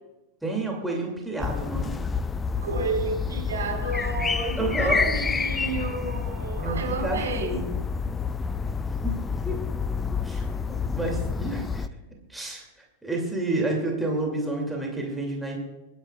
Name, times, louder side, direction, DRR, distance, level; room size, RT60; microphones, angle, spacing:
voice 1, 0.4-2.0 4.6-5.1 6.6-7.7 9.0-9.2 9.4-9.6 10.2-11.9 12.3-12.6 13.0-15.6, right 2 dB, 5° right, -1 dB, 2.6 m, -30 dB
sound 1, 1.4-11.9, left 5 dB, 15° left, 0.5 m, -29 dB
voice 2, 2.6-7.6, right 4 dB, 70° right, -1 dB, 4.9 m, -31 dB
28.5 x 10.5 x 2.4 m, 1.1 s
figure-of-eight pair, 90°, 0 cm